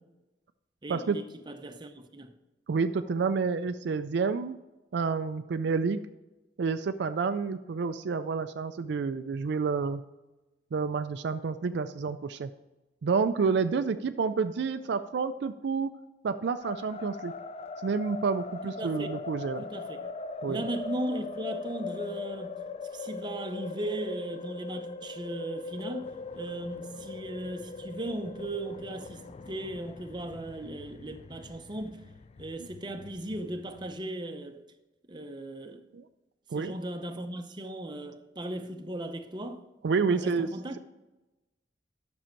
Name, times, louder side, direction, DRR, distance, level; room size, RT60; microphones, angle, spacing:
voice 1, 0.8-2.3 18.6-19.1 19.6-20.1 20.5-22.6 22.9-32.0 32.4-34.6 35.1-35.8 36.5-39.7 40.1-40.8, right 1 dB, 25° right, 0.7 m, -37 dB
voice 2, 2.7-4.6 4.9-6.0 6.6-10.0 10.7-12.5 13.0-15.9 16.2-17.3 17.8-19.6 20.4-20.6 35.9-36.0 36.5-36.7 39.8-40.5, right 5 dB, 65° right, 0.4 m, -29 dB
sound 1, 16.6-34.0, left 4 dB, 35° left, 0.3 m, -41 dB
10.0 x 6.3 x 4.5 m
head